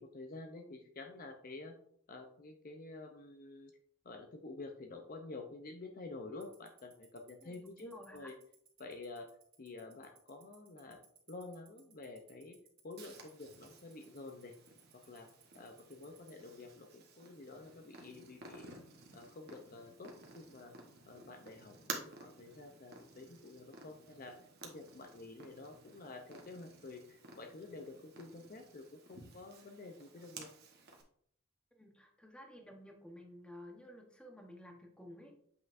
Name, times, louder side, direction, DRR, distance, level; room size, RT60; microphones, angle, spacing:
voice 1, 0.0-1.8 2.1-3.8 4.0-8.3 8.8-9.3 9.6-11.0 11.3-14.6 14.9-18.8 19.1-20.8 21.1-30.5, left 3 dB, 45° left, 5 dB, 0.6 m, -50 dB
Tick-tock, 6.4-16.3, right 8 dB, 30° right, 2.3 m, -61 dB
voice 2, 7.4-8.3 31.7-35.3, equal, 5° left, 2 dB, 1.0 m, -53 dB
Purr, 13.0-31.0, right 4 dB, 50° right, 1.1 m, -53 dB
8.0 x 5.5 x 2.5 m, 0.64 s
head